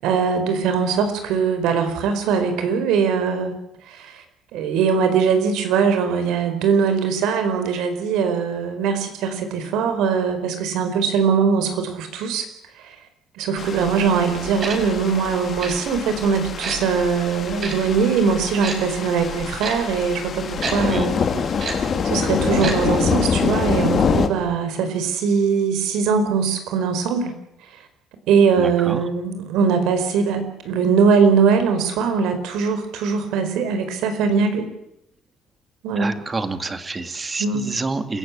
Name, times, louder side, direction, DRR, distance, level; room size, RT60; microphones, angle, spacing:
voice 1, 0.0-3.5 3.9-4.2 4.5-12.4 12.8-12.9 13.4-21.1 22.0-27.3 28.3-34.7 35.8-36.1 37.4-37.7, right 6 dB, 75° right, 8 dB, 5.0 m, -21 dB
sound 1, 13.6-24.3, left 6 dB, 35° left, 2.6 m, -25 dB
Tick-tock, 14.6-14.8 15.6-15.8 16.6-16.8 17.6-17.7 18.6-18.8 19.6-19.8 20.6-20.8 21.6-21.8 22.6-22.8 23.0-23.1, right 4 dB, 35° right, 5.6 m, -27 dB
voice 2, 20.8-21.1 28.6-29.0 36.0-38.2, right 3 dB, 20° right, 10 dB, 1.9 m, -28 dB
28.0 x 16.5 x 8.6 m, 0.81 s
cardioid pair, 150°, 0 cm